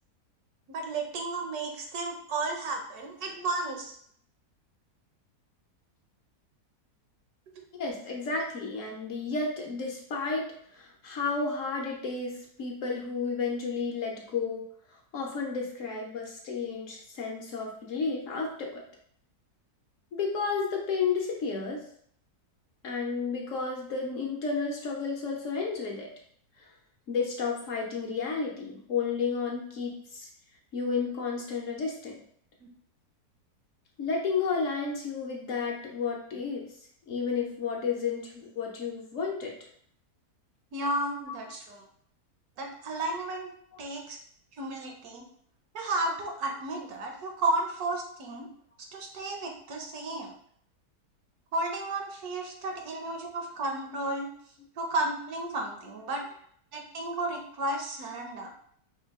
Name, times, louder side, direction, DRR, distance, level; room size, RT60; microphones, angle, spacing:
voice 1, 0.7-4.0 7.5-7.6 40.7-41.8 42.6-43.5 43.8-44.2 44.5-45.2 45.7-48.5 48.9-50.4 51.5-54.3 54.8-56.2 56.7-58.5, right 2 dB, 75° right, 2 dB, 1.2 m, -33 dB
voice 2, 7.8-10.5 10.7-14.6 15.1-18.8 20.1-21.8 22.8-26.1 26.6-26.7 27.1-30.3 30.7-32.2 34.0-36.7 37.1-39.5 41.2-41.3, left 5 dB, 60° left, 0 dB, 1.0 m, -32 dB
4.4 x 2.3 x 3.5 m, 0.64 s
omnidirectional pair, 1.7 m